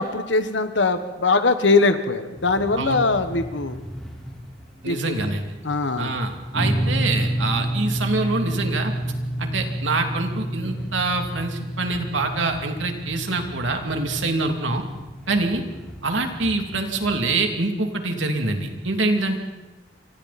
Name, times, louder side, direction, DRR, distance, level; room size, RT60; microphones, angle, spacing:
voice 1, 0.0-3.8 4.8-5.1 5.6-6.1, left 3 dB, 70° left, 9 dB, 1.4 m, -21 dB
sound 1, 2.3-17.3, equal, 5° left, 3.6 m, -41 dB
voice 2, 4.8-5.5 6.0-8.9 9.4-14.8 15.3-15.6 16.0-19.4, right 2 dB, 90° right, 3 dB, 2.9 m, -25 dB
sound 2, 6.5-14.2, right 1 dB, 45° left, 3.5 m, -28 dB
28.0 x 25.5 x 4.3 m, 1.1 s
head